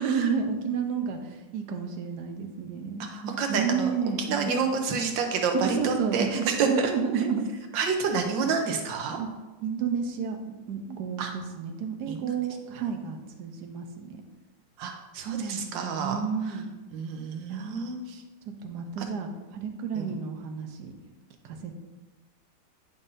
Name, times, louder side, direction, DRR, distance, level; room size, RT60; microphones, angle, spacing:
voice 1, 0.0-4.6 5.5-7.4 9.2-9.3 9.6-10.4 10.7-14.2 15.2-15.7 16.0-16.7 17.5-17.9 18.6-20.9 21.4-21.7, right 6 dB, 70° right, 5 dB, 1.3 m, -31 dB
voice 2, 3.1-3.9 4.3-6.9 7.7-9.2 11.2-11.3 12.1-12.4 14.8-16.2 16.9-18.2 19.0-19.1 19.9-20.1, right 5 dB, 85° right, 4 dB, 1.6 m, -29 dB
9.8 x 5.5 x 2.6 m, 1.2 s
omnidirectional pair, 2.0 m